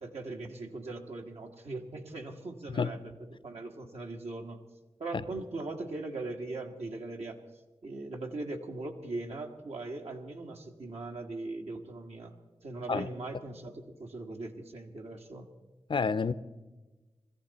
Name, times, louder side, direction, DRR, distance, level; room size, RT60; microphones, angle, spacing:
voice 1, 0.0-4.6 5.0-7.4 7.8-12.3 12.6-15.5, right 2 dB, 80° right, 1.6 m, -40 dB
voice 2, 15.9-16.3, left 5 dB, 50° left, 0.6 m, -29 dB
21.0 x 14.0 x 4.1 m
cardioid pair, 50°, 11 cm